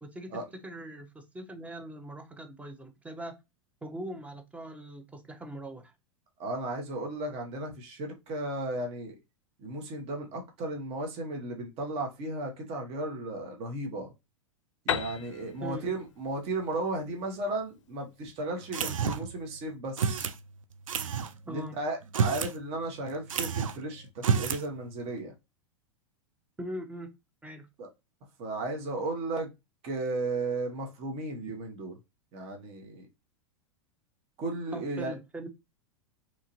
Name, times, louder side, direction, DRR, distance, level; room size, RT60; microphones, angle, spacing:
voice 1, 0.0-3.4 3.8-5.9 15.6-15.9 21.5-21.8 26.6-27.1 27.4-27.7 34.7-35.5, right 1 dB, 10° right, 0.6 m, -41 dB
voice 2, 6.4-9.2 9.6-14.1 14.8-20.3 21.5-25.3 27.8-27.9 28.4-29.5 29.8-32.0 32.3-33.1 34.4-35.1, right 2 dB, 40° right, 0.9 m, -35 dB
Piano, 14.9-18.5, left 9 dB, 70° left, 0.4 m, -37 dB
sound 1, 18.7-19.4 20.0-20.4 20.9-21.3 22.0-22.6 22.8-22.9 23.3-23.8 24.2-24.7, right 7 dB, 80° right, 0.4 m, -29 dB
2.9 x 2.4 x 2.9 m
hypercardioid pair, 95°, 17 cm